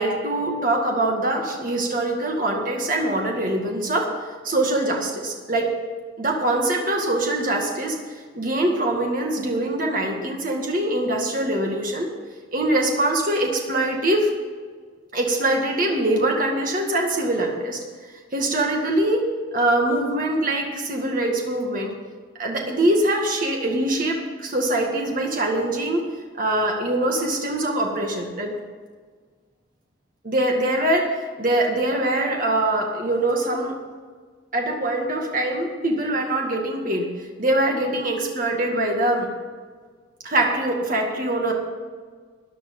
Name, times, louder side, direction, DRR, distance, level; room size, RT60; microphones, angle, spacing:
voice 1, 0.0-4.1 4.4-5.7 6.2-8.0 8.4-12.1 12.5-14.3 15.1-17.8 18.3-19.2 19.5-21.9 22.4-26.0 26.4-28.5 30.2-31.1 31.4-33.7 34.5-37.1 37.4-39.3 40.2-41.5, right 1 dB, 40° right, 1 dB, 2.0 m, -23 dB
13.5 x 10.0 x 5.4 m, 1.5 s
head